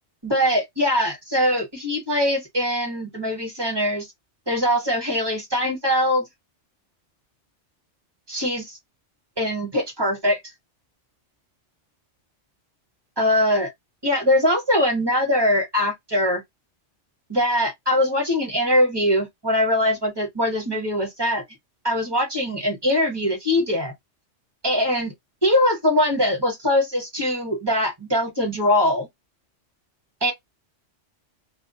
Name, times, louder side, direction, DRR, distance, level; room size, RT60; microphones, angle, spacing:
voice 1, 0.2-4.1 4.5-6.3 8.3-8.8 9.4-10.4 13.2-13.7 14.0-16.4 17.3-21.4 21.8-23.9 24.6-25.1 25.4-29.1 30.2-30.3, left 1 dB, 25° right, 0.9 m, -22 dB
2.3 x 2.2 x 2.6 m
omnidirectional pair, 1.2 m